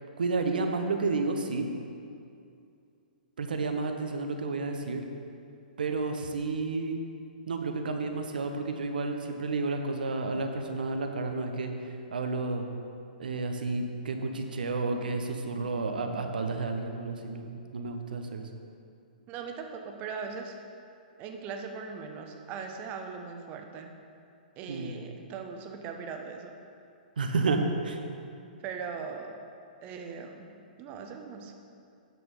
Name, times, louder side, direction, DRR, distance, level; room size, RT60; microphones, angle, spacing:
voice 1, 0.2-1.7 3.4-5.0 5.8-7.0 7.5-11.7 12.1-12.6 13.2-18.5 24.7-24.9 27.2-28.0, right 3 dB, 70° right, 5 dB, 0.8 m, -31 dB
voice 2, 19.3-20.6 21.2-23.9 24.6-26.5 28.6-29.4 29.8-30.5 30.8-31.5, right 5 dB, 30° right, 4 dB, 0.9 m, -39 dB
9.1 x 6.1 x 5.3 m, 2.5 s
figure-of-eight pair, 115°, 5 cm